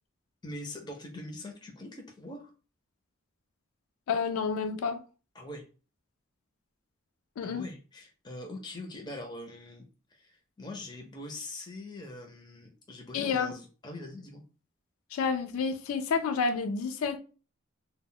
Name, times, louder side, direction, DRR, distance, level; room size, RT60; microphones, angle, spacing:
voice 1, 0.4-2.5 5.3-5.6 7.4-9.9 10.1-14.4, left 1 dB, 20° left, 0.5 m, -43 dB
voice 2, 4.1-5.0 7.4-7.6 13.1-13.5 15.1-17.2, left 5 dB, 80° left, 0.3 m, -29 dB
2.1 x 2.0 x 3.6 m
head